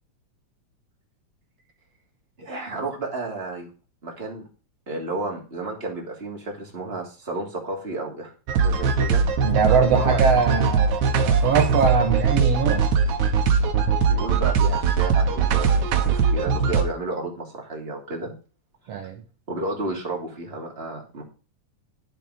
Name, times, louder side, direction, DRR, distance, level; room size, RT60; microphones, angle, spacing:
voice 1, 2.4-3.7 4.0-4.4 4.9-9.2 9.6-10.7 14.0-15.8 16.3-18.3 19.5-21.2, right 2 dB, 20° right, 0 dB, 3.1 m, -32 dB
sound 1, 8.5-16.8, right 5 dB, 80° right, 2.8 m, -20 dB
voice 2, 9.4-12.9 18.9-19.2, right 6 dB, 65° right, 4 dB, 2.2 m, -22 dB
12.0 x 7.6 x 5.0 m, 0.36 s
omnidirectional pair, 3.4 m